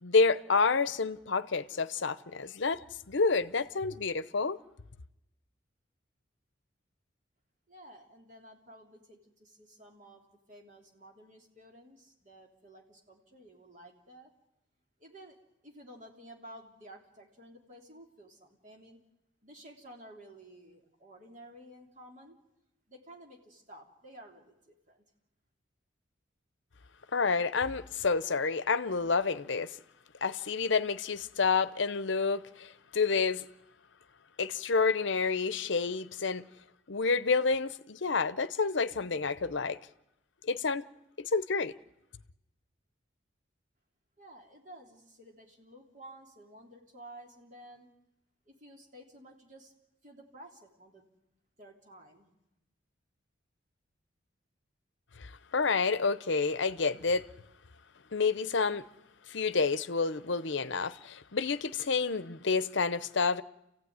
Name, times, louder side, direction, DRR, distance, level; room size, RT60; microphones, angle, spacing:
voice 1, 0.0-4.6 27.1-29.8 30.2-33.5 34.4-36.5 36.9-39.8 40.4-40.8 41.2-41.7 55.2-57.2 58.1-58.8 59.3-63.4, left 4 dB, 70° left, 0.8 m, -29 dB
voice 2, 7.7-14.3 15.0-15.4 15.6-19.0 19.4-22.4 22.9-25.0 44.2-47.9 48.5-49.7 50.0-51.0 51.6-52.3, right 1 dB, 40° right, 3.4 m, -53 dB
28.5 x 16.0 x 9.6 m
head